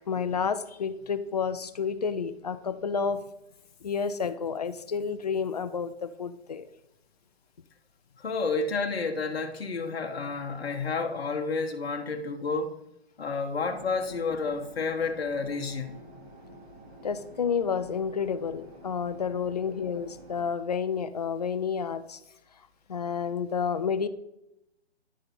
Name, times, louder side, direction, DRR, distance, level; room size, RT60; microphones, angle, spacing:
voice 1, 0.1-3.2 3.8-6.7 17.0-22.2 22.9-24.1, left 6 dB, 40° left, 0.4 m, -30 dB
voice 2, 8.2-12.7 13.2-16.0, left 4 dB, 65° left, 1.0 m, -30 dB
sound 1, 13.7-20.4, right 1 dB, 40° right, 1.6 m, -49 dB
10.0 x 3.8 x 4.2 m
figure-of-eight pair, 140°, 33 cm